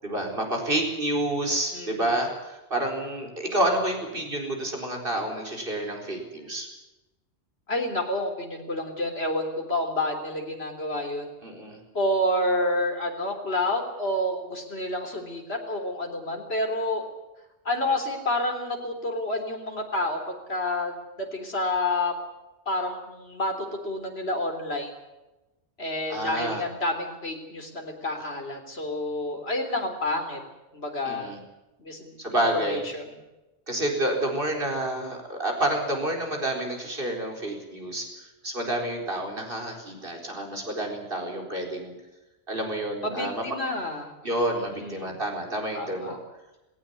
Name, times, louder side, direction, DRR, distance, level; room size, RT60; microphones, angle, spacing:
voice 1, 0.0-6.7 11.4-11.8 26.1-26.6 31.0-31.4 32.2-32.8 33.7-38.0 38.4-41.9 42.5-43.4 44.2-46.2, right 1 dB, 55° right, 2 dB, 4.7 m, -29 dB
voice 2, 1.7-2.0 7.7-11.3 11.9-17.0 17.7-22.1 22.7-24.9 25.8-30.4 30.7-31.3 31.8-32.2 32.7-33.0 43.0-44.1 44.6-45.2 45.7-46.2, left 1 dB, 65° left, 3 dB, 3.9 m, -29 dB
18.5 x 18.0 x 9.8 m, 1.0 s
omnidirectional pair, 1.1 m